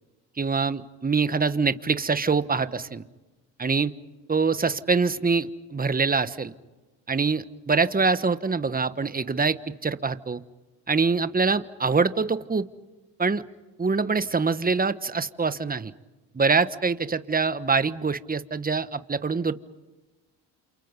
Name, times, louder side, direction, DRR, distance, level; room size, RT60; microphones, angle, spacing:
voice 1, 0.4-3.1 3.6-3.9 4.3-6.5 7.1-10.4 10.9-12.7 13.2-13.4 13.8-15.9 16.3-19.5, right 4 dB, 20° right, 13 dB, 1.3 m, -24 dB
29.0 x 28.0 x 5.4 m, 1.2 s
cardioid pair, 85°, 42 cm